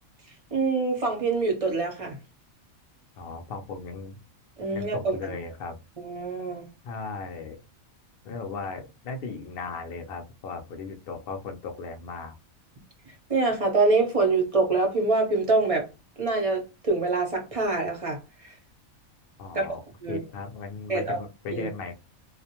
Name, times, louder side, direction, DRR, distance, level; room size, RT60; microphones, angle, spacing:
voice 1, 0.5-2.2 4.6-5.3 6.0-6.7 13.3-15.8 16.2-18.5 19.5-19.7 20.0-20.2 20.9-21.2 21.5-21.7, right 3 dB, 35° right, 0.6 m, -25 dB
voice 2, 3.2-4.2 4.7-5.8 6.8-7.6 8.2-12.3 19.4-19.8 20.1-22.0, left 4 dB, 65° left, 0.6 m, -36 dB
2.4 x 2.1 x 2.8 m
omnidirectional pair, 1.4 m